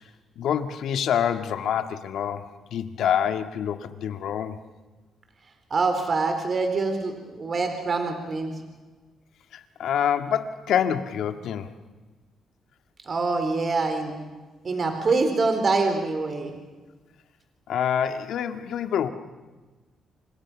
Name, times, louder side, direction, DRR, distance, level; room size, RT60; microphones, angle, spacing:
voice 1, 0.4-4.6 9.5-11.7 17.7-19.1, left 9 dB, 75° left, 8 dB, 1.8 m, -26 dB
voice 2, 5.7-8.5 13.0-14.1 14.6-16.5, right 3 dB, 40° right, 6 dB, 3.9 m, -25 dB
28.5 x 25.5 x 6.2 m, 1.3 s
cardioid pair, 110°, 0 cm